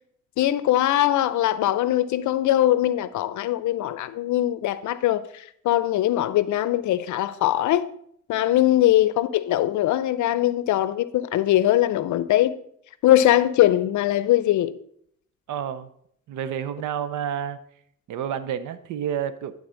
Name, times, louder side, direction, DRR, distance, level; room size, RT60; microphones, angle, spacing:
voice 1, 0.4-7.9 8.3-12.6 13.0-14.7, left 13 dB, 75° left, 0.6 m, -21 dB
voice 2, 15.5-15.9 16.3-17.6 18.1-19.5, right 9 dB, 80° right, 0.8 m, -29 dB
11.5 x 4.0 x 6.3 m
cardioid pair, 90°, 30 cm